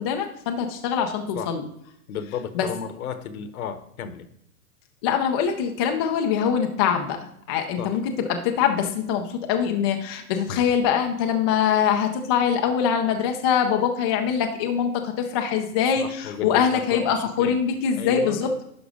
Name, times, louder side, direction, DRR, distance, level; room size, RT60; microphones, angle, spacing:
voice 1, 0.0-1.7 2.5-2.7 5.0-7.2 7.5-18.6, left 7 dB, 20° left, 4 dB, 0.4 m, -23 dB
voice 2, 2.1-4.3 7.8-7.9 16.0-17.6 18.0-18.4, left 8 dB, 70° left, 11 dB, 1.2 m, -33 dB
11.0 x 3.9 x 5.0 m, 0.74 s
hypercardioid pair, 140°, 45 cm